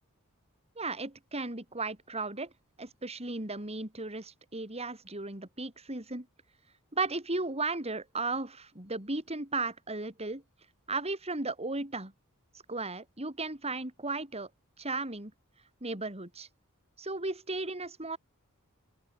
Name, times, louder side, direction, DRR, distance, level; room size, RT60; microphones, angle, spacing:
voice 1, 0.8-2.5 2.8-6.3 6.9-10.4 10.9-12.1 12.7-14.5 14.8-15.3 15.8-16.5 17.0-18.2, right 3 dB, 30° right, 5.4 m, -35 dB
open air
head